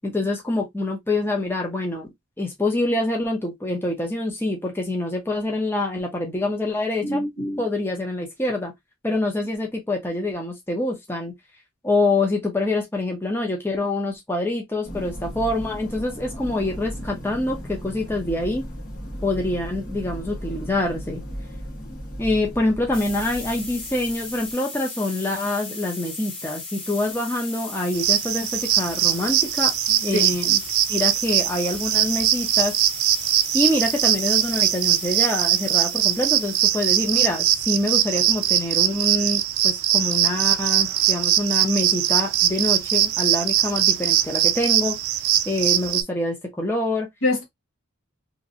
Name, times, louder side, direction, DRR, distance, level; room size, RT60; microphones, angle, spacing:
voice 1, 0.0-2.1 2.4-7.2 7.6-8.7 9.0-11.3 11.8-18.7 19.2-21.2 22.2-30.6 30.9-32.7 33.5-45.0 45.5-47.1, left 2 dB, 10° left, 0.7 m, -25 dB
voice 2, 7.0-7.6 30.1-30.3 47.2-47.4, left 1 dB, 70° left, 1.2 m, -24 dB
sound 1, 14.8-24.5, equal, 40° left, 1.2 m, -36 dB
sound 2, 22.9-38.1, left 3 dB, 25° left, 1.5 m, -37 dB
sound 3, 27.9-46.0, right 12 dB, 90° right, 0.4 m, -21 dB
3.0 x 2.6 x 2.4 m
head